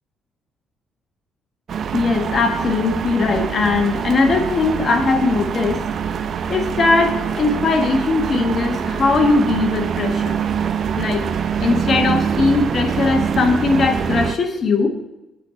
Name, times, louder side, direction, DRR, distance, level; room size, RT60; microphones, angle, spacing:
sound 1, 1.7-14.3, right 7 dB, 60° right, 0.5 m, -24 dB
voice 1, 1.9-5.8 6.5-10.4 11.0-11.2 11.6-14.9, left 3 dB, 50° left, 4 dB, 1.5 m, -19 dB
8.3 x 4.6 x 7.0 m, 0.94 s
cardioid pair, 90°, 0 cm